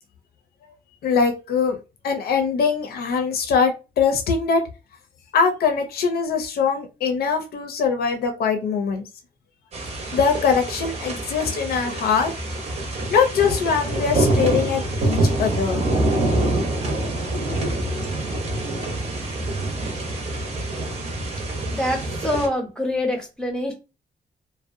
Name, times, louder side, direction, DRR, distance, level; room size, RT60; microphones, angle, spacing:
voice 1, 1.0-1.8 2.0-4.6 5.3-9.0 10.1-12.3 13.1-15.8, left 6 dB, 80° left, 4 dB, 0.5 m, -22 dB
sound 1, 9.7-22.5, right 2 dB, 45° right, 0.7 m, -25 dB
voice 2, 21.7-23.7, left 1 dB, 5° left, 1 dB, 0.6 m, -25 dB
2.6 x 2.1 x 2.5 m, 0.29 s
wide cardioid pair, 160°, 16 cm